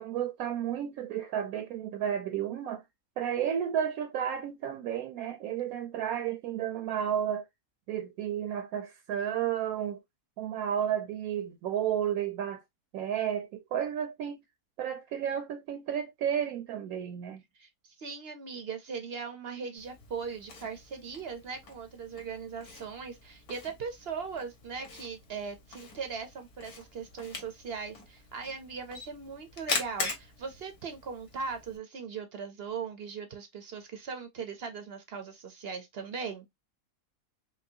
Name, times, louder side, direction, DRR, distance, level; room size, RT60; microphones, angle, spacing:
voice 1, 0.0-2.8 3.2-7.5 7.9-10.0 10.4-12.6 12.9-14.4 14.8-17.4, right 9 dB, 75° right, 1.0 m, -32 dB
voice 2, 17.6-36.4, right 5 dB, 55° right, 0.7 m, -39 dB
Camera, 19.8-31.8, left 4 dB, 85° left, 1.7 m, -42 dB
4.7 x 2.2 x 2.7 m
omnidirectional pair, 1.6 m